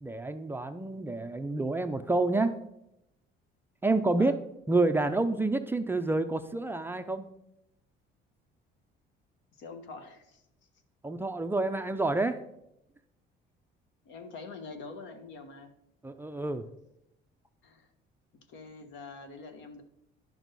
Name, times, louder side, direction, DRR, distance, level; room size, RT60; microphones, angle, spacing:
voice 1, 0.0-2.6 3.8-4.3 4.7-7.3 11.0-12.4 16.0-16.7, right 2 dB, 10° right, 7 dB, 0.4 m, -28 dB
voice 2, 9.6-10.4 14.0-15.7 17.6-17.9 18.5-19.8, left 4 dB, 70° left, 7 dB, 1.2 m, -45 dB
10.5 x 6.1 x 4.0 m, 0.82 s
cardioid pair, 150°, 19 cm